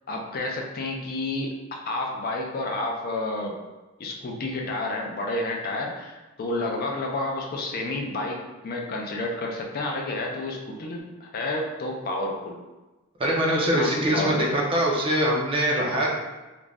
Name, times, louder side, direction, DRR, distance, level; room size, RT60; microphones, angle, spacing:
voice 1, 0.1-3.6 4.0-8.4 8.6-12.6 13.7-14.7, left 2 dB, 45° left, 0 dB, 0.4 m, -30 dB
voice 2, 13.2-16.1, right 1 dB, 25° right, -2 dB, 0.4 m, -23 dB
2.5 x 2.1 x 3.3 m, 1.1 s
head